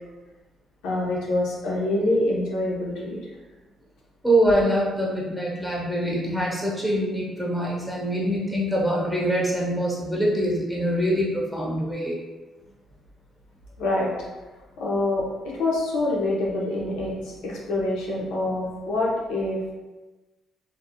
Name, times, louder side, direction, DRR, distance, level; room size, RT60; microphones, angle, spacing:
voice 1, 0.8-3.2 13.8-14.1 14.8-19.7, left 2 dB, 90° left, -4 dB, 0.5 m, -26 dB
voice 2, 4.2-12.2, equal, 5° right, -4 dB, 0.7 m, -24 dB
2.3 x 2.0 x 2.7 m, 1.2 s
cardioid pair, 90°, 0 cm